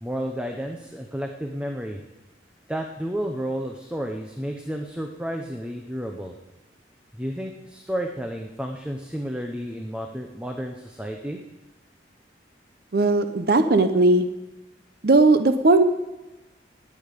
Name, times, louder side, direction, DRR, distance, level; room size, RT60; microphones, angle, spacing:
voice 1, 0.0-2.0 2.7-6.3 7.2-11.4, equal, 5° right, 3 dB, 0.7 m, -31 dB
voice 2, 12.9-14.3 15.0-15.8, right 2 dB, 55° right, 9 dB, 0.7 m, -18 dB
19.5 x 8.6 x 5.2 m, 1.1 s
head